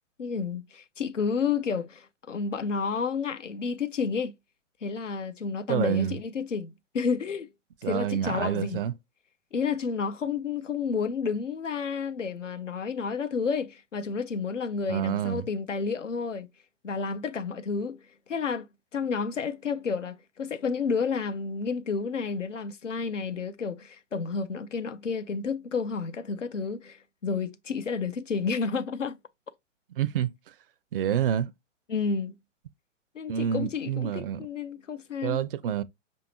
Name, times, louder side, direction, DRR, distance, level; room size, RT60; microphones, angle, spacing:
voice 1, 0.2-4.3 4.8-7.5 7.9-8.8 9.5-16.5 16.8-18.0 18.3-18.7 18.9-29.2 31.9-32.3 33.1-35.4, left 5 dB, 80° left, 0.7 m, -30 dB
voice 2, 5.7-6.2 7.8-8.9 14.9-15.5 30.0-30.3 30.9-31.5 33.3-34.5 35.2-35.8, right 9 dB, 50° right, 0.5 m, -28 dB
5.2 x 2.7 x 2.9 m
figure-of-eight pair, 115°, 37 cm